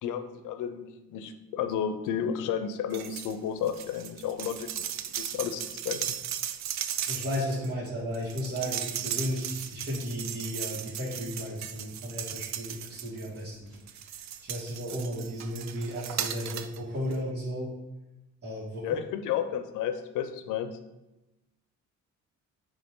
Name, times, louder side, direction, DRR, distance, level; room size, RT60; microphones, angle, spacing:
voice 1, 0.0-6.1 18.8-20.7, left 8 dB, 85° left, 8 dB, 0.7 m, -32 dB
sound 1, 2.9-3.3 3.6-13.4 13.9-16.8 17.1-17.2, right 10 dB, 65° right, 0.5 m, -36 dB
voice 2, 7.1-13.8 14.2-17.7 18.4-19.0, equal, 35° right, -8 dB, 2.1 m, -34 dB
9.3 x 3.2 x 3.7 m, 1.0 s
cardioid pair, 90°, 30 cm